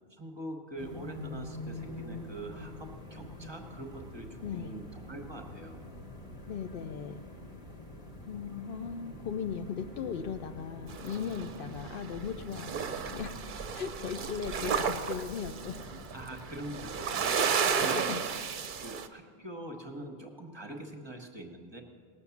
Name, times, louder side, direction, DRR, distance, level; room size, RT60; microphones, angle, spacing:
voice 1, 0.1-5.8 16.1-18.4 18.8-21.8, right 1 dB, 25° right, 4 dB, 1.1 m, -44 dB
sound 1, 0.8-17.8, left 1 dB, 35° left, 1.5 m, -46 dB
voice 2, 4.4-4.7 6.5-7.2 8.3-12.7 13.1-13.4 13.7-15.8 17.7-18.2, left 6 dB, 65° left, 8 dB, 0.7 m, -37 dB
sound 2, 10.9-12.3 12.5-19.1, right 6 dB, 55° right, 0.8 m, -33 dB
18.5 x 7.0 x 7.1 m, 2.1 s
omnidirectional pair, 1.0 m